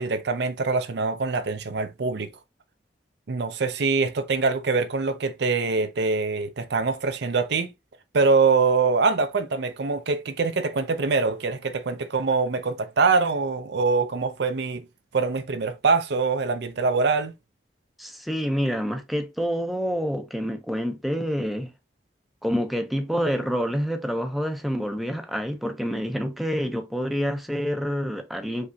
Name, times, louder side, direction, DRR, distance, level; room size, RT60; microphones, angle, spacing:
voice 1, 0.0-2.3 3.3-7.7 8.1-14.8 15.1-17.3, right 4 dB, 65° right, 0.6 m, -24 dB
voice 2, 18.0-21.7 22.4-28.7, equal, ahead, 0.6 m, -27 dB
5.0 x 3.3 x 2.7 m
head